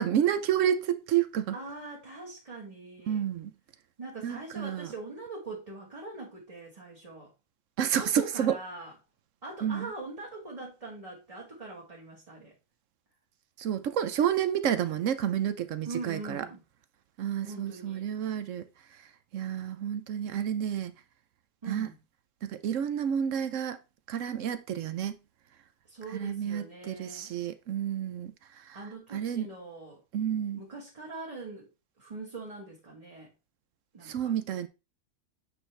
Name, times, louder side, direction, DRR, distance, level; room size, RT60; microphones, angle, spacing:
voice 1, 0.0-1.5 3.1-3.5 4.2-4.9 7.8-8.6 9.6-9.9 13.6-16.5 17.2-18.6 19.3-20.9 21.7-21.9 22.4-23.8 24.1-25.2 26.1-28.8 29.1-29.5 30.1-30.6 34.0-34.7, right 9 dB, 65° right, 0.9 m, -30 dB
voice 2, 1.5-3.2 4.0-7.3 7.9-8.9 9.4-12.5 15.8-16.6 17.4-18.0 21.6-22.0 25.8-27.4 28.7-30.0 30.6-31.7 32.0-33.3 33.9-34.3, right 3 dB, 25° right, 1.3 m, -42 dB
8.0 x 4.4 x 3.3 m
omnidirectional pair, 1.6 m